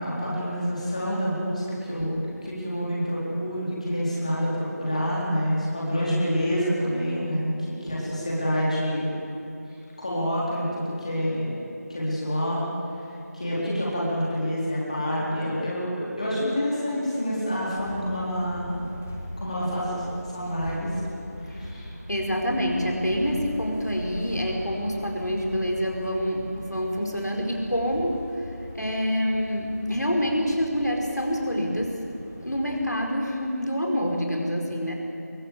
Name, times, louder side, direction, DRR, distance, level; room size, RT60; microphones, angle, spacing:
voice 1, 0.0-2.1 2.4-9.1 10.0-11.5 11.9-12.7 13.3-18.8 19.4-20.1 20.3-20.9 21.5-21.9, equal, 25° left, -7 dB, 4.1 m, -27 dB
sound 1, 17.4-33.2, left 1 dB, 10° left, 0.7 m, -40 dB
voice 2, 22.1-32.0 32.4-34.9, equal, 85° left, 0 dB, 4.8 m, -27 dB
23.0 x 16.5 x 8.5 m, 2.8 s
figure-of-eight pair, 170°, 9 cm